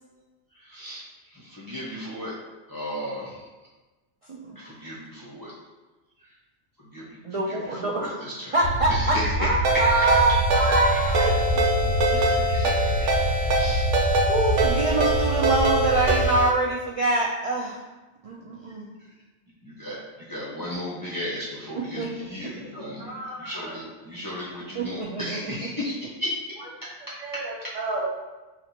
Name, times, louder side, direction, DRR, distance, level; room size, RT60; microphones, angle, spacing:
voice 1, 0.5-2.3 2.7-3.4 4.5-5.5 6.2-6.3 6.8-8.6 8.9-9.3 12.1-13.9 19.0-19.1 19.6-26.3 27.6-27.7, equal, 20° left, -7 dB, 0.8 m, -36 dB
voice 2, 4.3-4.7 7.2-8.2 8.5-11.3 12.1-12.2 14.3-17.8 18.2-18.9 21.7-22.1 22.4-22.5 24.7-25.5, right 2 dB, 65° right, -3 dB, 0.3 m, -25 dB
sound 1, 8.6-16.4, left 1 dB, 60° left, 0.6 m, -26 dB
Ringtone, 9.6-16.5, right 3 dB, 85° right, 1.0 m, -24 dB
voice 3, 22.6-23.8 27.2-28.2, right 2 dB, 30° right, -6 dB, 1.2 m, -33 dB
5.8 x 2.8 x 2.8 m, 1.2 s
omnidirectional pair, 1.2 m